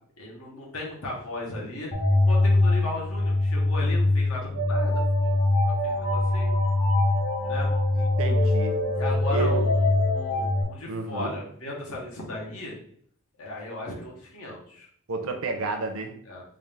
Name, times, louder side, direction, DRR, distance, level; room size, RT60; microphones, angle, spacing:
voice 1, 0.2-1.9 2.3-5.4 5.8-6.5 7.4-7.7 9.0-12.8 13.4-14.9 16.2-16.4, left 2 dB, 70° left, -3 dB, 1.2 m, -36 dB
sound 1, 1.9-10.6, left 2 dB, 45° left, 1.0 m, -23 dB
voice 2, 8.0-8.8 9.3-9.7 10.9-11.3 15.1-16.2, right 3 dB, 65° right, 5 dB, 0.6 m, -31 dB
3.7 x 2.5 x 3.4 m, 0.63 s
head